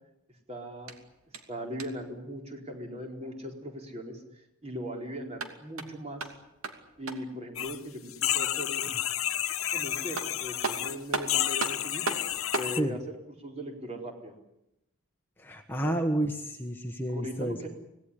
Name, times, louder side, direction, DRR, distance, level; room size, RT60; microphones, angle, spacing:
voice 1, 0.5-0.9 1.5-6.3 7.0-9.0 9.7-12.1 12.5-14.4 15.8-16.0 17.1-17.7, equal, 30° right, 2 dB, 4.4 m, -39 dB
sound 1, 0.7-2.1 5.2-7.4 9.7-9.8 10.2-12.8, right 3 dB, 80° right, 2.7 m, -37 dB
sound 2, 7.6-7.8 8.1-11.0 11.3-12.8, left 12 dB, 75° left, 1.2 m, -30 dB
voice 2, 15.4-17.6, right 1 dB, 10° left, 4 dB, 1.3 m, -30 dB
26.0 x 18.5 x 10.0 m, 0.85 s
head